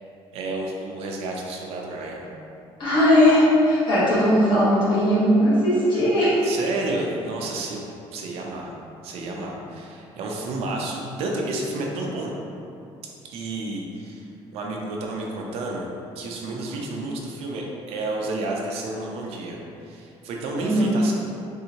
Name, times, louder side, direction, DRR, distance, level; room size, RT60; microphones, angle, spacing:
voice 1, 0.3-2.2 6.4-7.8 8.1-8.7 9.0-12.3 13.2-14.2 14.5-15.9 16.2-19.6 19.8-21.1, right 2 dB, 70° right, -1 dB, 0.5 m, -31 dB
voice 2, 2.8-6.4 20.6-20.9, equal, 45° left, -9 dB, 1.3 m, -18 dB
3.3 x 2.7 x 2.8 m, 2.7 s
cardioid pair, 150°, 11 cm